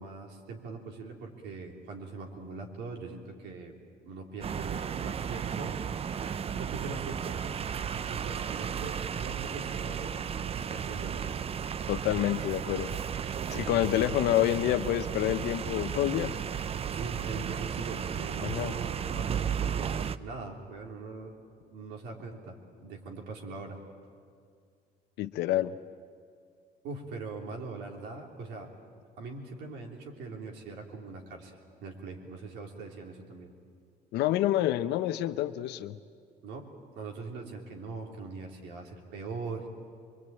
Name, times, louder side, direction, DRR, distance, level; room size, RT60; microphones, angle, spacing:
voice 1, 0.0-3.7 4.0-5.8 6.5-7.4 8.1-10.2 10.7-11.3 13.5-13.9 16.9-21.3 21.7-22.5 22.8-23.8 26.8-28.7 29.2-31.5 31.8-33.5 36.4-36.7 36.9-39.7, right 4 dB, 90° right, 1 dB, 3.5 m, -41 dB
sound 1, 4.4-20.2, right 8 dB, 35° right, 0.6 m, -34 dB
voice 2, 11.9-12.9 13.5-16.3 18.4-18.7 25.2-25.7 34.1-36.0, left 13 dB, 85° left, 11 dB, 0.8 m, -28 dB
23.5 x 23.5 x 9.0 m, 2.2 s
cardioid pair, 110°, 17 cm